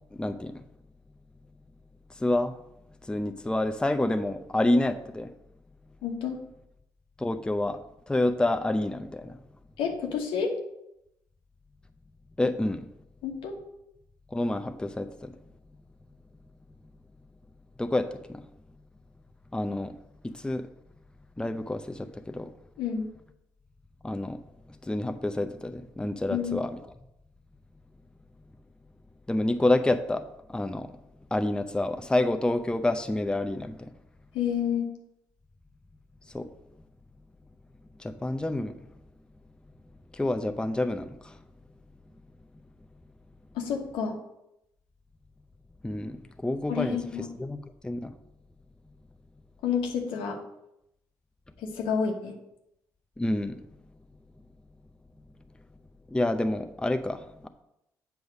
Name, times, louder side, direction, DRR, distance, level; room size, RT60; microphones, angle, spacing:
voice 1, 0.1-0.6 2.2-2.5 3.0-5.3 7.2-7.8 8.1-9.3 12.4-12.8 14.3-15.4 17.8-18.4 19.5-20.0 20.2-20.7 21.4-22.5 24.0-24.4 24.8-26.8 29.3-30.2 30.5-30.9 31.3-33.9 36.3-36.5 38.0-38.7 40.1-41.4 45.8-47.6 47.8-48.2 53.2-53.6 56.1-57.5, left 1 dB, 10° left, 8 dB, 0.6 m, -28 dB
voice 2, 6.0-6.4 9.8-10.5 13.2-13.5 22.8-23.1 26.3-26.6 34.3-34.9 43.5-44.2 46.7-47.3 49.6-50.4 51.6-52.3, left 7 dB, 75° left, 2 dB, 1.3 m, -29 dB
7.8 x 3.5 x 6.4 m, 0.83 s
hypercardioid pair, 50°, 9 cm